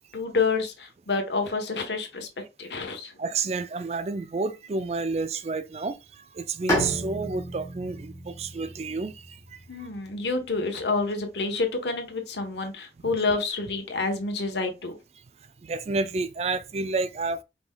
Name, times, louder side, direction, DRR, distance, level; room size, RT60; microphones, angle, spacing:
voice 1, 0.1-2.3 2.6-3.1 9.7-15.0, left 3 dB, 70° left, 1.2 m, -28 dB
voice 2, 3.2-9.9 13.0-13.2 15.6-17.4, right 3 dB, 35° right, 0.4 m, -30 dB
Bowed string instrument, 6.7-10.3, equal, 15° left, 1.5 m, -32 dB
5.0 x 3.7 x 2.3 m
head